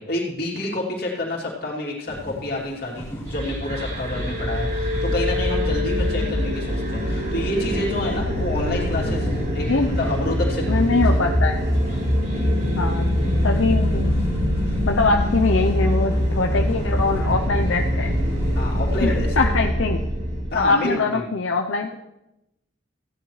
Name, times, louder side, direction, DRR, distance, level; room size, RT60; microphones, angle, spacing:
voice 1, 0.0-11.0 12.3-12.6 18.5-19.3 20.5-21.2, left 1 dB, 50° left, -4 dB, 3.0 m, -28 dB
sound 1, 2.1-19.6, equal, 15° left, 2.4 m, -38 dB
sound 2, 3.2-20.7, equal, 45° right, 3.7 m, -23 dB
voice 2, 10.7-11.6 12.7-13.1 13.4-14.2 14.9-18.1 19.0-20.0 20.5-22.0, left 3 dB, 80° left, 2 dB, 0.7 m, -22 dB
15.5 x 10.0 x 3.2 m, 0.90 s
head